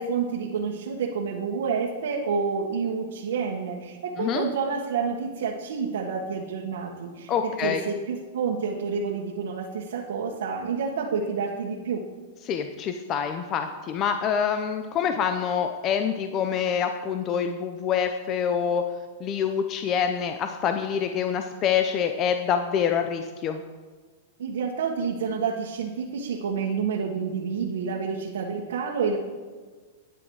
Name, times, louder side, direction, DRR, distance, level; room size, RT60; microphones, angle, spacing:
voice 1, 0.0-12.0 24.4-29.2, right 5 dB, 80° right, -2 dB, 1.7 m, -29 dB
voice 2, 7.3-7.8 12.4-18.8 19.2-23.6, left 7 dB, 30° left, 7 dB, 0.7 m, -26 dB
12.0 x 9.7 x 4.9 m, 1.4 s
supercardioid pair, 150°, 0 cm